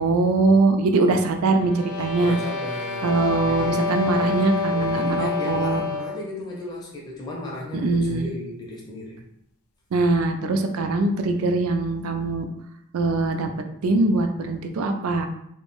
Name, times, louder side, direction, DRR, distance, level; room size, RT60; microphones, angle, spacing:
voice 1, 0.0-2.4 3.0-5.8 7.7-8.3 9.9-12.5 12.9-13.5 13.8-15.3, right 3 dB, 80° right, 6 dB, 0.4 m, -22 dB
sound 1, 1.6-6.3, left 4 dB, 75° left, 0.3 m, -28 dB
voice 2, 2.2-9.2, left 1 dB, 20° left, -3 dB, 0.5 m, -36 dB
2.6 x 2.1 x 3.0 m, 0.76 s
head